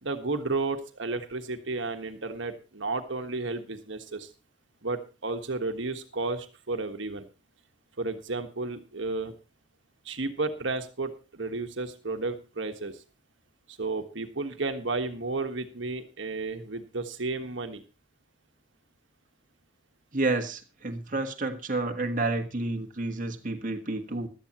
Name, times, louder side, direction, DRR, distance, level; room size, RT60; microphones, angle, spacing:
voice 1, 0.0-4.3 4.8-7.3 8.0-9.3 10.0-13.0 13.8-17.8, right 3 dB, 65° right, 1.5 m, -32 dB
voice 2, 20.1-24.3, right 2 dB, 40° right, 1.5 m, -30 dB
16.0 x 12.5 x 3.0 m
head